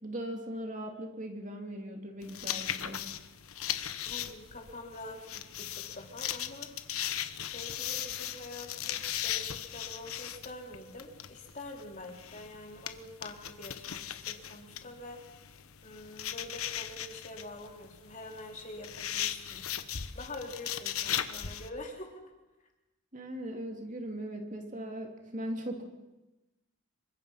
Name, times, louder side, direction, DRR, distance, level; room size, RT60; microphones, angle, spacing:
voice 1, 0.0-3.1 23.1-25.8, right 1 dB, 35° right, 3 dB, 2.7 m, -39 dB
sound 1, 2.2-21.7, left 10 dB, 80° left, 1.2 m, -38 dB
voice 2, 4.1-6.7 7.5-15.2 15.8-19.7 20.1-22.3, left 2 dB, 35° left, 2 dB, 3.5 m, -46 dB
27.0 x 23.5 x 5.7 m, 1.0 s
head